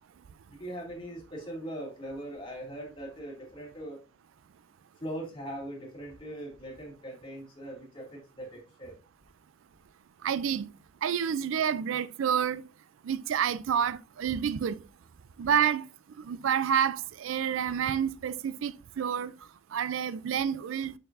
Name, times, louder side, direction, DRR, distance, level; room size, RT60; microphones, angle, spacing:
voice 1, 0.5-4.0 5.0-8.9, right 1 dB, 25° left, 2.3 m, -40 dB
voice 2, 10.2-10.7 11.0-12.6 13.0-14.8 15.4-15.8 16.2-19.3 19.7-20.9, right 8 dB, 80° right, 0.4 m, -28 dB
6.6 x 6.2 x 2.5 m
head